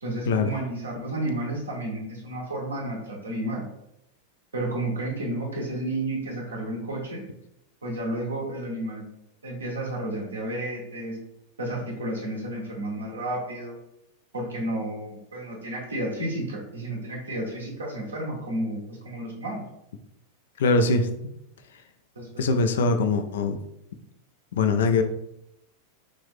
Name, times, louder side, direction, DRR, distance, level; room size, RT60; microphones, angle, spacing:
voice 1, 0.0-3.6 4.5-7.2 7.8-9.0 9.4-11.2 11.6-13.7 14.3-19.6 22.1-22.4, right 1 dB, 70° right, -1 dB, 1.1 m, -31 dB
voice 2, 20.6-21.1 22.4-23.6 24.5-25.0, left 3 dB, 60° left, 7 dB, 0.4 m, -22 dB
3.3 x 2.6 x 3.5 m, 0.81 s
figure-of-eight pair, 90°, 0 cm